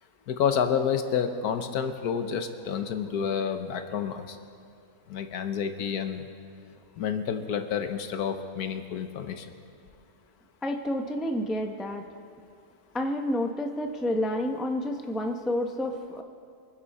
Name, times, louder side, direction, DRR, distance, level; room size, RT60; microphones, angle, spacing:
voice 1, 0.3-4.4 5.1-6.2 7.0-9.4, left 7 dB, 75° left, 7 dB, 1.4 m, -29 dB
voice 2, 10.6-12.0 12.9-16.2, left 1 dB, ahead, 4 dB, 0.4 m, -29 dB
24.5 x 10.5 x 4.2 m, 2.4 s
omnidirectional pair, 1.7 m